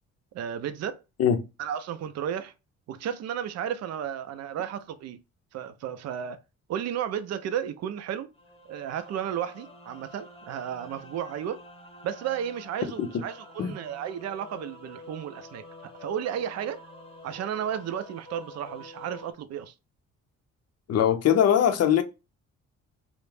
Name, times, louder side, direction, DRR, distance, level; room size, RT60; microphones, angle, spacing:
voice 1, 0.3-1.0 1.6-2.5 2.9-5.2 5.5-6.4 6.7-8.3 8.7-11.6 12.0-16.8 17.2-19.7, right 9 dB, 60° right, 0.5 m, -33 dB
sound 1, 8.3-19.3, left 1 dB, 20° left, 0.8 m, -48 dB
voice 2, 20.9-22.0, left 9 dB, 55° left, 0.6 m, -21 dB
2.4 x 2.1 x 3.2 m
cardioid pair, 90°, 30 cm